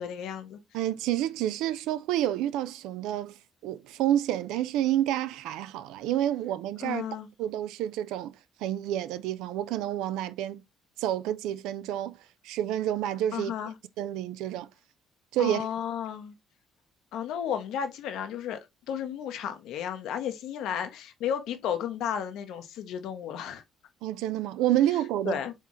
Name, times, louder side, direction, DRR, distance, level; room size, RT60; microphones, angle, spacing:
voice 1, 0.0-0.6 6.8-7.3 13.3-13.7 15.4-16.3 17.1-18.6 18.9-23.6 25.2-25.5, left 9 dB, 70° left, 0.7 m, -33 dB
voice 2, 0.7-3.4 3.6-7.0 7.4-8.3 8.6-10.6 11.0-12.2 12.4-13.5 14.0-14.7 15.3-15.7 24.0-25.4, right 12 dB, 75° right, 0.4 m, -29 dB
4.4 x 3.5 x 2.9 m
hypercardioid pair, 60°, 0 cm